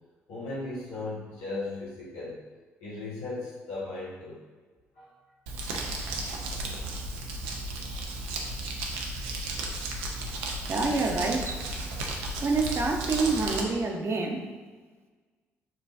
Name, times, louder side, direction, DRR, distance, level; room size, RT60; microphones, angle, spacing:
voice 1, 0.3-2.4 2.8-4.4 5.0-5.1, left 2 dB, 80° left, -7 dB, 1.1 m, -36 dB
Crumpling crinkling, 5.5-13.6, right 2 dB, 80° right, 0.5 m, -34 dB
voice 2, 10.7-11.7 12.4-14.5, right 3 dB, 40° right, 1 dB, 0.8 m, -27 dB
6.9 x 2.4 x 2.5 m, 1.4 s
hypercardioid pair, 50°, 7 cm